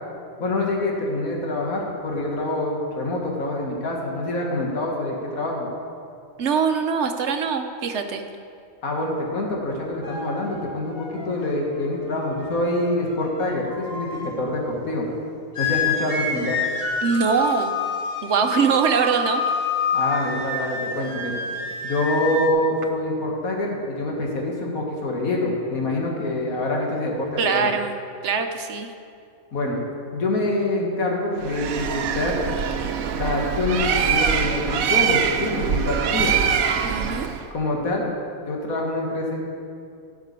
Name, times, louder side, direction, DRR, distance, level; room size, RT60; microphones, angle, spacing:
voice 1, 0.4-5.7 8.8-15.1 15.6-16.6 19.9-21.4 21.8-27.7 29.5-29.8 30.1-32.4 33.1-36.4 37.5-38.1 38.5-39.4, left 2 dB, 80° left, -1 dB, 2.1 m, -25 dB
voice 2, 6.4-8.2 17.0-17.8 18.2-19.4 27.4-27.9 28.2-28.9 36.8-37.3, right 5 dB, 60° right, 6 dB, 1.0 m, -22 dB
sound 1, 10.0-14.4 15.6-22.5, left 3 dB, 40° left, 1.5 m, -28 dB
Bird, 31.4-37.5, right 7 dB, 80° right, 1.2 m, -23 dB
12.0 x 5.9 x 8.3 m, 2.4 s
omnidirectional pair, 1.5 m